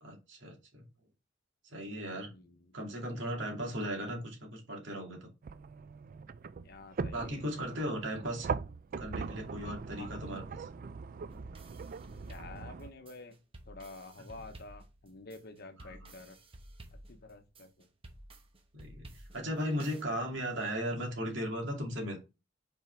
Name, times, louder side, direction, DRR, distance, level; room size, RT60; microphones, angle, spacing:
voice 1, 0.0-0.8 1.6-2.3 2.7-5.3 7.1-8.5 9.0-10.7 15.8-16.1 18.7-22.2, equal, 70° right, 2.4 m, -37 dB
voice 2, 2.3-2.7 6.6-7.5 10.0-10.1 12.3-13.4 13.7-16.4 17.1-17.9, left 3 dB, 55° left, 1.0 m, -49 dB
sound 1, 5.4-12.9, right 5 dB, 45° right, 0.4 m, -41 dB
sound 2, 11.3-20.0, right 1 dB, 30° right, 1.0 m, -53 dB
5.5 x 4.6 x 4.5 m
head